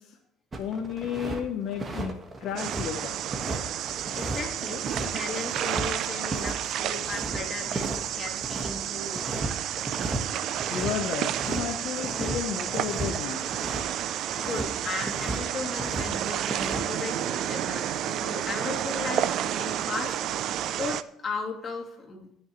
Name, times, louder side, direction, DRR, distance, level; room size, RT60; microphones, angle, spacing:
sound 1, 0.5-1.4 1.7-5.9 6.3-6.5 6.8-8.7 9.1-9.5 9.8-10.2 10.5-13.9 14.2-14.7 15.0-16.1 16.4-16.9, right 3 dB, 25° right, 1.6 m, -34 dB
voice 1, 0.6-2.1 2.4-3.2 10.7-13.4, left 8 dB, 65° left, 3 dB, 1.0 m, -32 dB
sound 2, 2.6-21.0, right 11 dB, 65° right, 0.5 m, -31 dB
voice 2, 4.1-9.5 14.4-22.3, left 3 dB, 30° left, -1 dB, 2.9 m, -36 dB
18.5 x 6.4 x 3.2 m, 0.76 s
cardioid pair, 110°, 0 cm